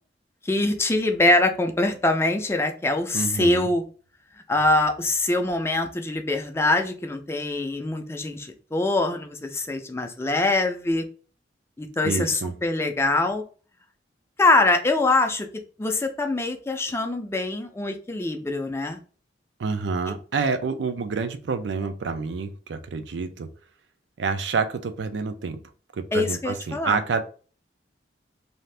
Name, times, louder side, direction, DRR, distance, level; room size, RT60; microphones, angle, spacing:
voice 1, 0.4-3.8 4.5-11.0 11.8-13.4 14.4-15.5 15.8-19.0 26.1-27.0, left 2 dB, 15° left, 5 dB, 0.4 m, -23 dB
voice 2, 3.1-3.7 12.0-12.6 19.6-23.5 24.2-25.6 25.9-27.2, right 4 dB, 75° right, 9 dB, 0.4 m, -28 dB
2.7 x 2.4 x 3.3 m, 0.39 s
head